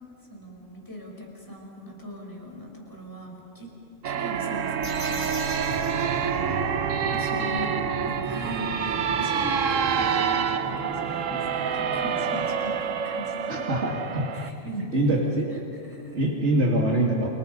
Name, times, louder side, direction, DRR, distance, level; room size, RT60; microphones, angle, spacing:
voice 1, 0.3-3.7 4.0-5.3 7.1-13.6 14.3-16.2, equal, 15° left, -1 dB, 5.4 m, -39 dB
sound 1, 4.0-14.5, right 7 dB, 75° right, 1.3 m, -27 dB
sound 2, 4.8-6.9, left 1 dB, 60° left, 6.0 m, -39 dB
sound 3, 5.6-12.6, right 1 dB, 5° right, 2.8 m, -38 dB
voice 2, 6.4-7.1 13.5-14.2 14.7-15.4 16.1-17.3, right 1 dB, 60° right, -1 dB, 2.9 m, -25 dB
29.5 x 28.5 x 5.5 m, 2.7 s
omnidirectional pair, 1.3 m